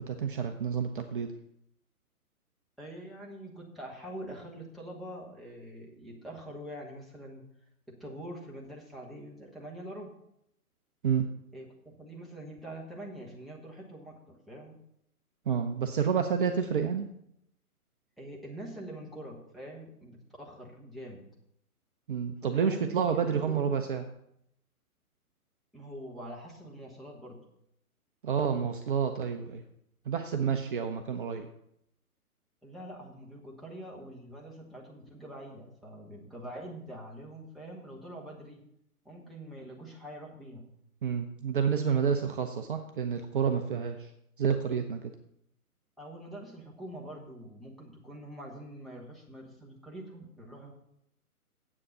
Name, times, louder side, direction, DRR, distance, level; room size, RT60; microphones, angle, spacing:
voice 1, 0.0-1.3 11.0-11.3 15.5-17.1 22.1-24.1 28.2-29.6 30.0-31.5 41.0-44.1 44.4-45.1, right 7 dB, 35° right, 6 dB, 0.7 m, -29 dB
voice 2, 2.8-7.5 7.9-10.1 11.5-14.8 18.2-21.2 22.4-23.7 25.7-27.4 32.6-38.6 39.0-40.7 46.0-50.7, right 1 dB, ahead, -4 dB, 1.2 m, -44 dB
9.8 x 8.0 x 5.5 m, 0.76 s
figure-of-eight pair, 135°, 45 cm